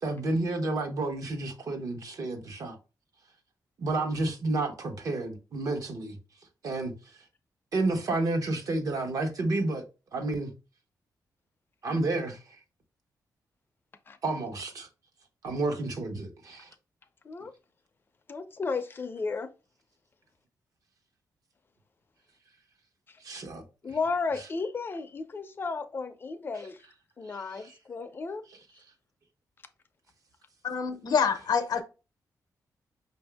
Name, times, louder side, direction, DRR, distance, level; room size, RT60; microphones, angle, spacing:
voice 1, 0.0-2.8 3.8-6.2 6.6-6.9 7.7-9.8 10.1-10.5 11.8-12.4 14.2-14.9 15.4-16.7 23.2-23.6 27.3-27.7, right 2 dB, 55° right, 1.1 m, -30 dB
voice 2, 18.3-19.5 23.1-23.2 23.8-26.8 27.2-28.4, left 4 dB, 30° left, 0.5 m, -33 dB
voice 3, 30.6-31.8, left 6 dB, 70° left, 0.7 m, -26 dB
5.8 x 2.7 x 3.4 m
wide cardioid pair, 140°, 7 cm